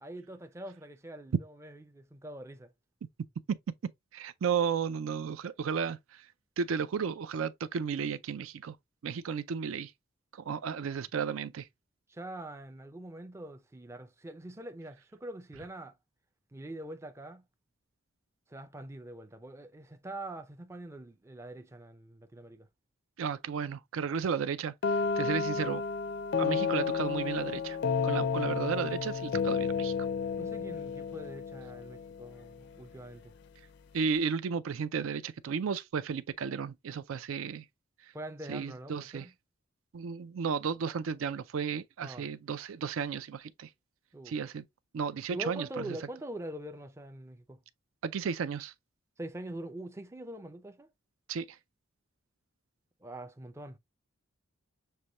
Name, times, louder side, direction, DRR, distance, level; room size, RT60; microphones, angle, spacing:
voice 1, 0.0-2.7 12.1-16.0 16.5-17.4 18.5-22.7 30.4-33.3 38.1-39.3 42.0-42.3 44.1-44.4 45.3-47.6 49.2-50.9 53.0-53.8, right 1 dB, 15° right, 0.4 m, -44 dB
voice 2, 3.8-6.0 6.6-8.8 9.0-9.9 10.5-11.7 23.2-25.8 26.4-27.8 28.0-29.9 33.9-37.6 38.5-39.3 39.9-43.7 44.3-44.6 44.9-46.0 48.0-48.7 51.3-51.6, right 6 dB, 80° right, 0.4 m, -33 dB
sound 1, 24.8-32.5, left 5 dB, 55° left, 0.4 m, -31 dB
6.5 x 2.2 x 2.9 m
head